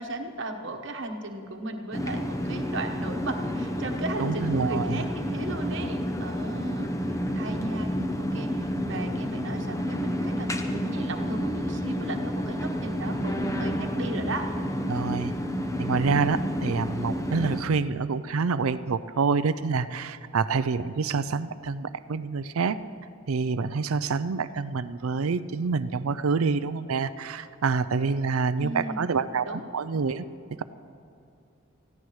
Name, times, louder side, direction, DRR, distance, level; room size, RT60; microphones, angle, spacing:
voice 1, 0.0-7.9 8.2-14.4 28.6-29.1 29.4-29.6, right 2 dB, 60° right, 4 dB, 1.2 m, -36 dB
sound 1, 1.9-17.6, equal, 15° left, 0.7 m, -30 dB
voice 2, 4.2-5.0 14.9-15.3 15.8-22.8 23.3-30.3, right 4 dB, 90° right, 13 dB, 0.5 m, -27 dB
20.0 x 15.5 x 3.2 m, 2.7 s
head